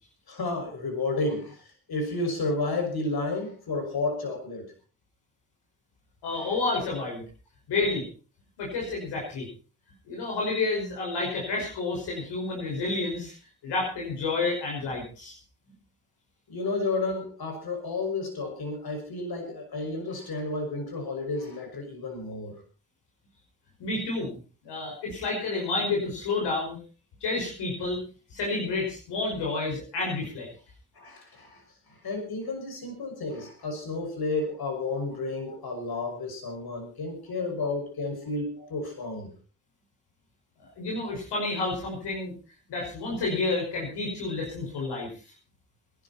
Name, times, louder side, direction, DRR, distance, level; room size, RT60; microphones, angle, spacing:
voice 1, 0.3-4.7 6.4-6.5 16.5-22.6 30.9-31.6 31.9-39.3, left 3 dB, 65° left, 4 dB, 6.1 m, -32 dB
voice 2, 6.2-7.2 7.7-8.1 8.6-9.5 10.1-13.3 13.6-15.4 23.8-24.4 24.6-26.8 27.2-28.0 28.3-30.5 40.6-42.3 42.7-45.1, left 3 dB, 85° left, -2 dB, 5.5 m, -30 dB
23.0 x 11.5 x 4.2 m, 0.38 s
supercardioid pair, 45°, 40 cm